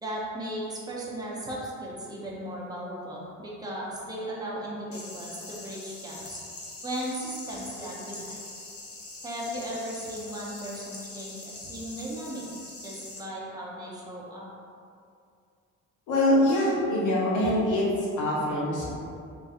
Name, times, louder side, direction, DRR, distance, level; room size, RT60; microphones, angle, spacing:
voice 1, 0.0-6.4 6.8-8.4 9.2-12.4 12.8-14.5, right 1 dB, 15° right, -5 dB, 0.7 m, -36 dB
sound 1, 4.9-13.2, left 2 dB, 50° left, 0.7 m, -43 dB
voice 2, 16.1-17.8 18.2-18.9, left 1 dB, 85° left, -6 dB, 1.0 m, -24 dB
3.7 x 2.7 x 2.4 m, 2.3 s
cardioid pair, 90°, 30 cm